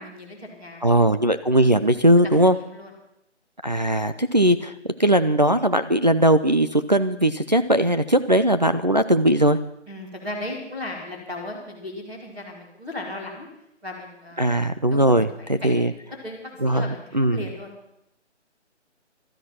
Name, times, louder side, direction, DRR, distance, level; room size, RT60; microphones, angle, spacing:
voice 1, 0.0-0.9 1.4-1.6 2.2-2.9 9.9-13.5 13.8-14.5 14.9-15.8 16.2-17.7, left 1 dB, 5° right, -7 dB, 2.4 m, -36 dB
voice 2, 0.8-2.6 3.6-4.7 5.0-9.6 14.4-15.9 16.6-17.5, right 1 dB, 40° right, 8 dB, 0.5 m, -19 dB
16.0 x 13.0 x 5.8 m, 0.80 s
hypercardioid pair, 175°, 36 cm